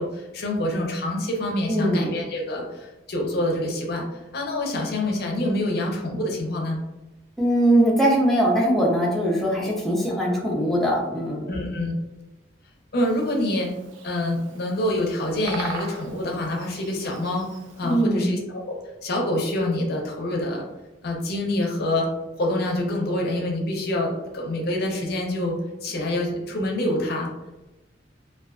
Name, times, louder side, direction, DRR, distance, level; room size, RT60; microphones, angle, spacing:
voice 1, 0.0-6.8 11.5-12.0 12.9-13.7 14.0-18.8 19.0-20.6 21.0-22.1 22.4-27.3, left 1 dB, 55° left, 0 dB, 0.6 m, -26 dB
voice 2, 1.7-2.1 7.4-11.5 17.8-18.3, right 1 dB, ahead, -4 dB, 0.5 m, -21 dB
Bird vocalization bird call bird song, 13.0-18.0, right 4 dB, 90° right, 0.4 m, -40 dB
2.3 x 2.3 x 2.3 m, 1.0 s
head